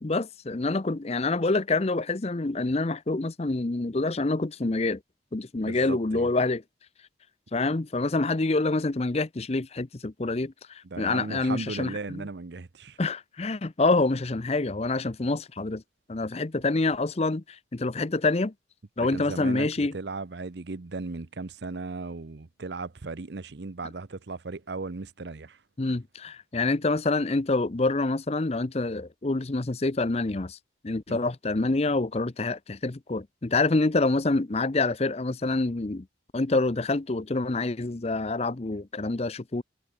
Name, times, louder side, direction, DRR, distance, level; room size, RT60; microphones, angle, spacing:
voice 1, 0.0-5.0 5.3-6.6 7.5-12.3 13.0-15.8 16.1-18.5 19.0-19.9 25.8-30.6 30.8-36.1 36.3-39.6, left 3 dB, 30° left, 0.6 m, -27 dB
voice 2, 5.7-6.3 10.8-13.0 19.0-25.6 31.1-31.2, right 3 dB, 60° right, 0.7 m, -36 dB
head